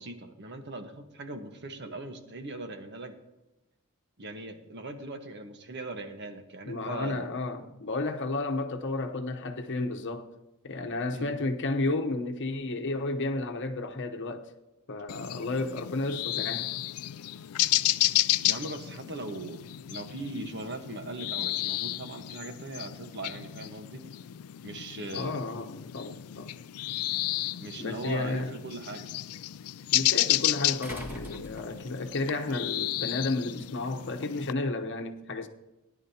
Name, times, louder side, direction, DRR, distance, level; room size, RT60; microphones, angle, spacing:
voice 1, 0.0-3.2 4.2-7.3 11.1-11.4 18.4-19.6 19.9-24.0 24.6-25.4 27.6-29.1, right 2 dB, 55° right, 1.3 m, -39 dB
voice 2, 6.7-10.3 10.6-14.5 14.9-16.7 25.1-26.6 27.8-28.5 29.9-35.5, left 2 dB, 55° left, 1.0 m, -32 dB
sound 1, 15.1-34.5, left 15 dB, 80° left, 0.4 m, -32 dB
sound 2, 27.5-27.6 30.8-32.1 33.5-33.6, equal, 10° right, 1.7 m, -43 dB
18.0 x 11.0 x 2.9 m
head